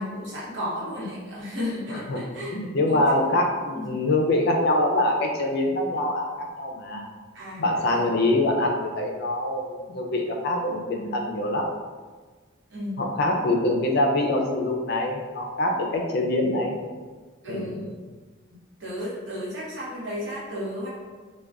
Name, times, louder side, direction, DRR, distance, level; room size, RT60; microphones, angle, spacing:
voice 1, 0.0-2.5 2.9-3.1 3.8-4.0 7.3-8.2 12.7-13.0 17.4-17.9 18.8-20.9, left 1 dB, 65° right, -7 dB, 1.0 m, -33 dB
voice 2, 2.5-7.1 7.6-11.7 13.0-16.8 17.5-17.8, left 1 dB, 55° left, 1 dB, 0.4 m, -24 dB
2.3 x 2.2 x 3.4 m, 1.4 s
head